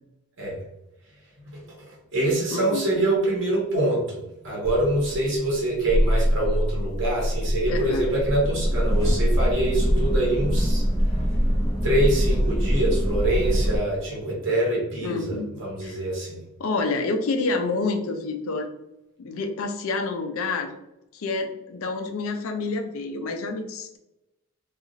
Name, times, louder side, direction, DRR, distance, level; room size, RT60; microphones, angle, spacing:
voice 1, 1.5-10.8 11.8-16.4, right 1 dB, 55° right, -4 dB, 0.9 m, -25 dB
voice 2, 2.5-2.8 7.7-8.0 15.0-15.5 15.8-15.9 16.6-18.7 19.2-20.7 21.1-24.0, left 3 dB, 75° left, 5 dB, 0.4 m, -28 dB
sound 1, 4.6-13.8, equal, 15° left, 0.8 m, -23 dB
2.9 x 2.4 x 2.5 m, 0.89 s
head